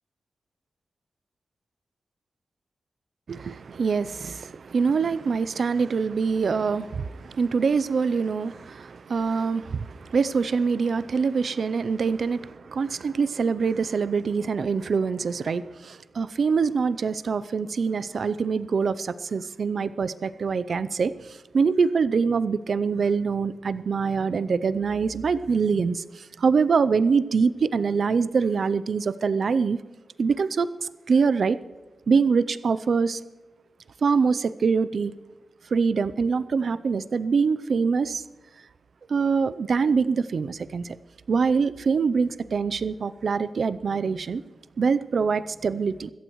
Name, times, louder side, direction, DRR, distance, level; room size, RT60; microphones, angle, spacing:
voice 1, 3.3-21.1 21.5-29.8 30.2-31.6 32.1-33.2 34.0-35.1 35.7-38.2 39.1-41.0 41.3-44.4 44.8-46.1, right 5 dB, 60° right, 15 dB, 0.5 m, -24 dB
25.0 x 14.0 x 3.1 m, 1.2 s
wide cardioid pair, 135°, 0 cm